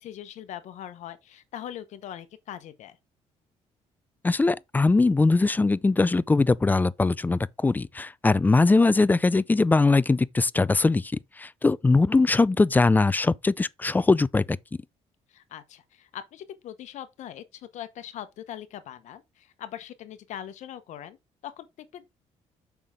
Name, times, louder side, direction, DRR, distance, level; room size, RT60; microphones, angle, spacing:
voice 1, 0.0-3.0 15.3-21.2 21.4-22.1, left 11 dB, 70° left, 1.0 m, -41 dB
voice 2, 4.2-11.1 11.4-14.6, left 3 dB, 15° left, 0.3 m, -21 dB
6.9 x 5.7 x 3.7 m
cardioid pair, 95°, 12 cm